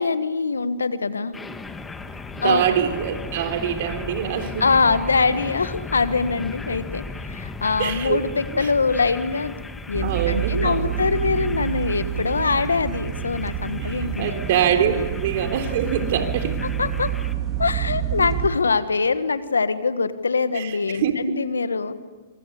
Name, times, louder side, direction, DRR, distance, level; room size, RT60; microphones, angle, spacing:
voice 1, 0.0-1.3 2.4-2.6 4.6-9.5 9.9-14.3 14.8-15.1 16.8-17.1 17.6-21.9, left 4 dB, 85° left, 13 dB, 1.4 m, -23 dB
sound 1, 1.3-17.3, left 3 dB, 10° left, 1.6 m, -37 dB
voice 2, 2.4-4.7 7.8-8.2 8.5-8.7 10.0-10.9 13.8-16.6 20.5-21.1, right 9 dB, 55° right, 6 dB, 3.5 m, -24 dB
sound 2, 9.9-18.5, right 9 dB, 25° right, 2.6 m, -28 dB
25.0 x 25.0 x 8.3 m, 1.4 s
hypercardioid pair, 115°, 0 cm